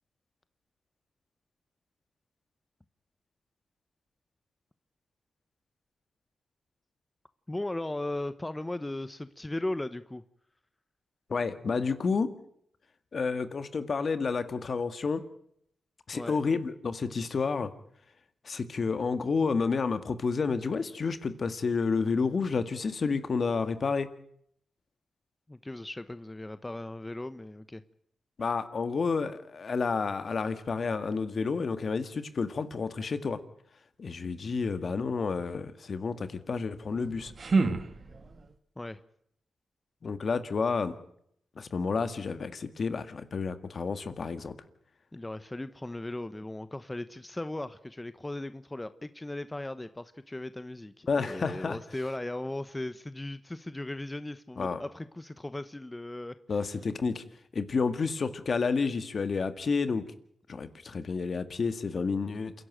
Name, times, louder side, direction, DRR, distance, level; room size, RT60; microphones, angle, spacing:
voice 1, 7.5-10.2 16.1-16.4 25.5-27.8 38.8-39.0 45.1-56.7, left 1 dB, 20° left, 1.0 m, -37 dB
voice 2, 11.3-12.3 13.1-15.3 16.1-17.7 18.4-24.1 28.4-33.4 34.0-37.3 40.0-41.0 41.6-44.6 51.1-51.8 54.6-54.8 56.5-57.2 57.5-60.1 60.5-62.5, left 4 dB, 55° left, 1.8 m, -30 dB
sound 1, 36.9-38.5, right 3 dB, 50° right, 1.9 m, -30 dB
28.0 x 11.5 x 9.1 m
cardioid pair, 60°, 0 cm